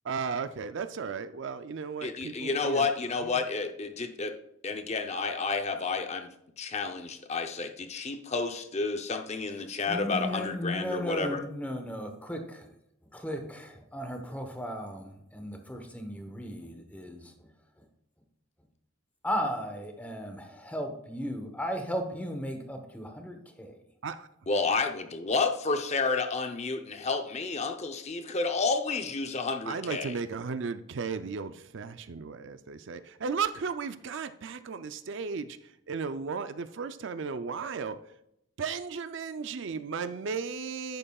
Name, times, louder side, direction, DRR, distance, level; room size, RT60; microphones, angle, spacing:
voice 1, 0.0-2.9 24.0-24.3 29.7-38.0 38.6-41.0, right 5 dB, 55° right, 11 dB, 0.4 m, -35 dB
voice 2, 2.0-4.3 4.6-11.4 24.5-30.2, left 4 dB, 30° left, 6 dB, 0.6 m, -30 dB
voice 3, 9.9-12.7 13.1-17.3 19.2-23.7, equal, 5° left, 5 dB, 1.0 m, -35 dB
10.5 x 8.9 x 2.3 m, 0.77 s
head